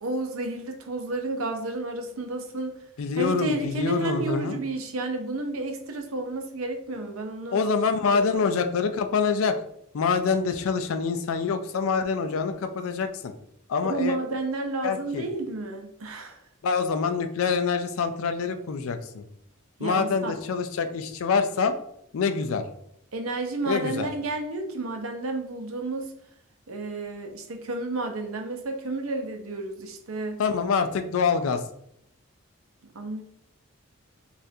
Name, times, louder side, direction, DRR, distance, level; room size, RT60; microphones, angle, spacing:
voice 1, 0.0-2.7 3.2-7.6 8.1-8.4 13.8-16.4 19.8-20.3 23.1-26.1 26.7-30.4 32.9-33.2, right 2 dB, 75° right, 4 dB, 0.6 m, -31 dB
voice 2, 3.0-4.6 7.5-9.5 9.9-13.3 13.7-14.2 14.8-15.2 16.6-19.2 19.8-21.7 22.1-22.6 23.6-24.1 30.4-31.6, left 5 dB, 75° left, 8 dB, 0.4 m, -25 dB
4.1 x 2.5 x 2.7 m, 0.73 s
head